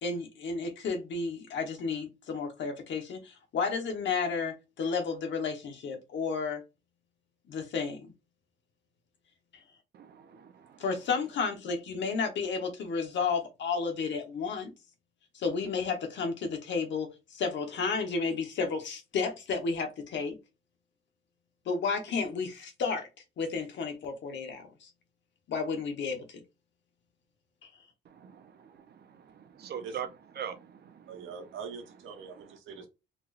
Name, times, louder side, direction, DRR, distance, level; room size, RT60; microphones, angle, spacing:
voice 1, 0.0-6.6 7.5-8.1 10.8-14.7 15.3-20.4 21.6-23.1 23.4-24.9 25.5-26.4, left 5 dB, 65° left, 1.2 m, -32 dB
voice 2, 9.9-10.8 28.1-30.1 30.4-31.1, right 8 dB, 55° right, 0.7 m, -42 dB
voice 3, 31.1-32.9, right 5 dB, 80° right, 1.2 m, -43 dB
4.3 x 2.9 x 2.5 m
cardioid pair, 90°, 20 cm